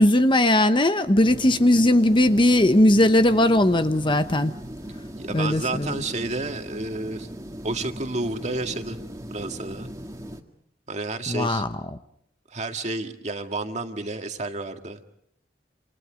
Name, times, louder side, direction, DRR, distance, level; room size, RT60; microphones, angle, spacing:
voice 1, 0.0-4.5 5.3-6.0 11.3-11.7, left 1 dB, 25° left, 9 dB, 1.0 m, -19 dB
sound 1, 1.2-10.4, equal, 20° right, 1.9 m, -39 dB
voice 2, 5.2-7.3 7.6-9.0 9.3-9.9 10.9-11.6 12.5-15.0, right 2 dB, 40° right, 5 dB, 2.0 m, -30 dB
28.0 x 27.5 x 5.2 m, 0.71 s
head